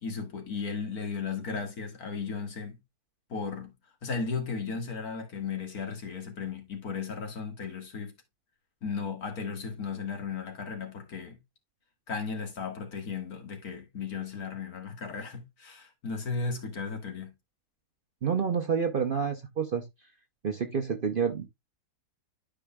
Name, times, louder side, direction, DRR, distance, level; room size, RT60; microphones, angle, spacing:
voice 1, 0.0-2.8 3.3-3.7 4.0-8.1 8.8-11.4 12.1-17.3, left 5 dB, 70° left, 2.2 m, -35 dB
voice 2, 18.2-19.8 20.4-21.5, right 6 dB, 50° right, 0.7 m, -28 dB
12.0 x 4.9 x 2.2 m
omnidirectional pair, 1.6 m